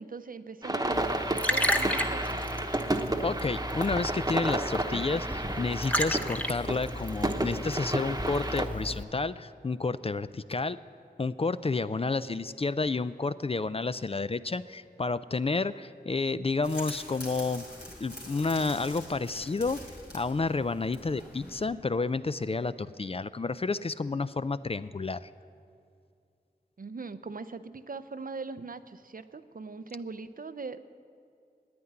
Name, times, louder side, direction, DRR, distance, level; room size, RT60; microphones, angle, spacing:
voice 1, 0.0-2.5 26.8-30.8, right 4 dB, 55° right, 12 dB, 0.5 m, -41 dB
sound 1, 0.6-8.7, right 1 dB, 20° right, 1.0 m, -32 dB
Liquid, 0.9-9.0, equal, 10° left, 0.8 m, -34 dB
voice 2, 3.2-10.8 11.2-17.7 18.0-19.8 20.1-25.3, left 3 dB, 35° left, 14 dB, 0.4 m, -30 dB
sound 2, 16.6-21.7, left 1 dB, 80° left, 3.1 m, -45 dB
9.5 x 9.4 x 9.9 m, 2.4 s
wide cardioid pair, 45°, 17 cm